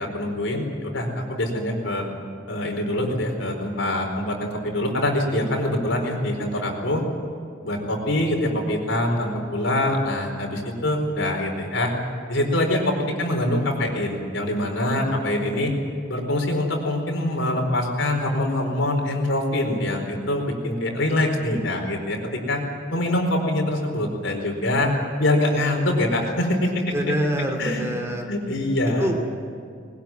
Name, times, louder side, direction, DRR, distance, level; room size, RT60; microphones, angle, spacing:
voice 1, 0.0-2.0 2.5-7.0 7.6-11.9 12.3-15.7 16.1-22.2 22.5-22.6 22.9-24.9 25.2-26.9 27.6-27.9 28.3-29.1, left 1 dB, 75° left, 2 dB, 4.6 m, -24 dB
voice 2, 26.9-28.3 29.0-29.2, equal, 15° right, 3 dB, 2.3 m, -25 dB
21.0 x 20.0 x 9.1 m, 2.3 s
head